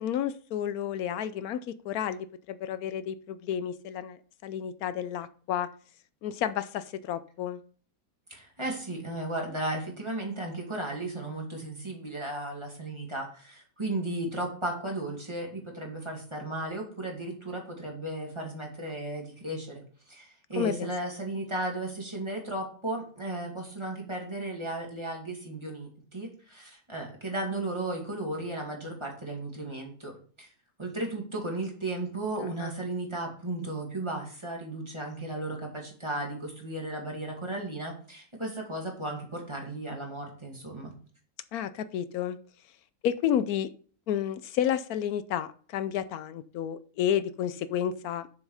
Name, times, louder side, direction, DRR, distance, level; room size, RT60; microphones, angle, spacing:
voice 1, 0.0-5.7 6.2-7.6 20.6-20.9 32.6-32.8 41.5-42.4 43.0-43.7 44.1-48.3, left 10 dB, 85° left, 14 dB, 1.1 m, -31 dB
voice 2, 8.3-30.5 30.8-40.9, right 2 dB, 20° right, 0 dB, 2.4 m, -35 dB
7.2 x 6.4 x 4.8 m, 0.43 s
omnidirectional pair, 1.5 m